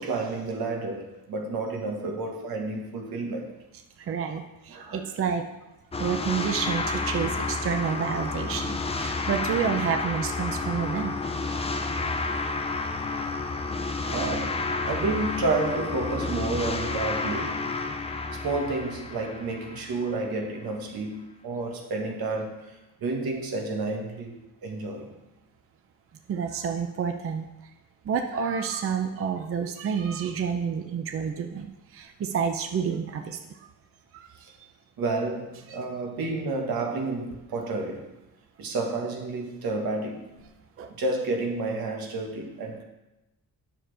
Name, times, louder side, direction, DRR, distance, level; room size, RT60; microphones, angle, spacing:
voice 1, 0.0-3.5 4.7-5.4 14.0-17.8 18.3-25.1 34.4-34.5 35.0-38.1 38.6-40.3 40.9-42.8, right 3 dB, 85° right, 2 dB, 1.5 m, -30 dB
voice 2, 4.0-5.4 6.0-11.1 26.3-27.4 28.1-31.7 31.9-33.4 34.1-34.2 40.8-40.9, right 7 dB, 40° right, 5 dB, 0.5 m, -29 dB
sound 1, 5.9-20.3, left 3 dB, 20° left, 0.3 m, -30 dB
9.9 x 6.7 x 3.3 m, 0.97 s
wide cardioid pair, 180°, 35 cm